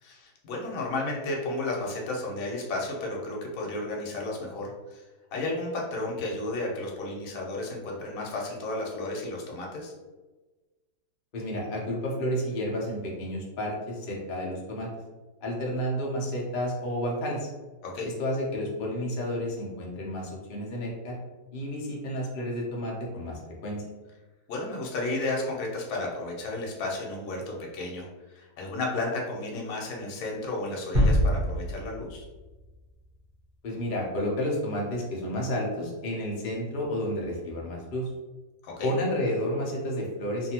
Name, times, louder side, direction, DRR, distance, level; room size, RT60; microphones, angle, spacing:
voice 1, 0.0-5.0 5.3-9.9 17.8-18.1 24.5-32.2 38.6-38.9, left 2 dB, 60° left, -1 dB, 1.0 m, -33 dB
voice 2, 11.3-14.9 15.4-17.5 18.0-21.2 21.5-23.8 33.6-38.1 38.8-40.5, equal, 85° left, -2 dB, 0.4 m, -31 dB
sound 1, 30.9-32.8, equal, 35° right, 1.0 m, -25 dB
2.6 x 2.6 x 2.8 m, 1.2 s
omnidirectional pair, 1.8 m